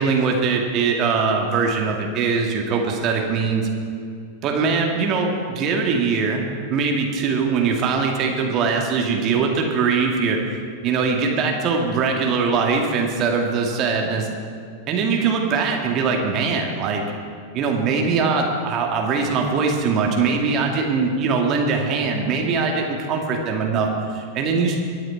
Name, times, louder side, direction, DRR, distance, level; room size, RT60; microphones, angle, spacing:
voice 1, 0.0-3.7 4.4-6.4 6.7-10.4 10.8-14.2 14.9-17.0 17.5-23.9 24.1-24.8, right 5 dB, 35° right, 1 dB, 2.0 m, -21 dB
23.0 x 9.1 x 4.6 m, 2.2 s
figure-of-eight pair, 90°, 0 cm